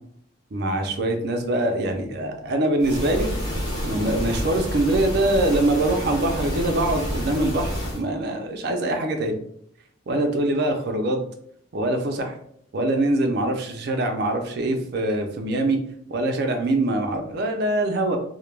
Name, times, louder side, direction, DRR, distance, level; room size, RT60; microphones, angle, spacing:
voice 1, 0.5-3.3 3.8-9.4 10.1-11.2 11.7-12.3 12.7-15.8 16.1-18.2, right 1 dB, 50° right, 4 dB, 0.4 m, -23 dB
sound 1, 2.8-8.0, equal, 20° left, 0.6 m, -29 dB
2.1 x 2.1 x 3.1 m, 0.68 s
head